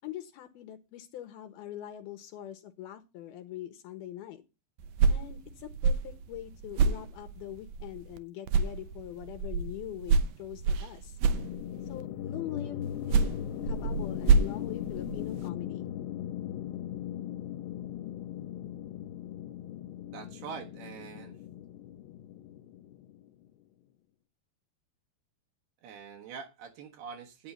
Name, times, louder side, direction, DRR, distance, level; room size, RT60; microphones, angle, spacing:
voice 1, 0.0-4.4 5.1-11.2 11.9-13.3 13.6-15.9, left 12 dB, 75° left, 2.7 m, -43 dB
sound 1, 4.8-8.2 8.5-12.0 12.8-15.5, right 5 dB, 90° right, 1.7 m, -28 dB
sound 2, 11.3-23.5, left 11 dB, 90° left, 2.9 m, -39 dB
voice 2, 20.1-21.4 25.8-27.5, right 6 dB, 75° right, 3.3 m, -44 dB
11.0 x 9.5 x 4.4 m
omnidirectional pair, 4.8 m